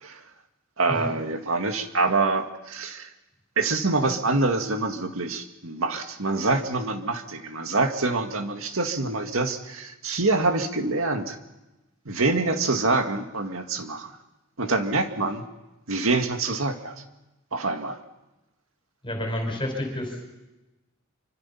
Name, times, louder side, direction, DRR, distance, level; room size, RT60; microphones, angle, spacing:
voice 1, 0.8-3.1 3.6-11.4 12.1-14.1 14.6-15.4 15.9-16.9 17.5-18.0, right 3 dB, 75° right, 6 dB, 2.1 m, -25 dB
voice 2, 19.0-20.2, left 1 dB, 25° left, 3 dB, 5.3 m, -29 dB
25.5 x 24.5 x 5.8 m, 1.0 s
head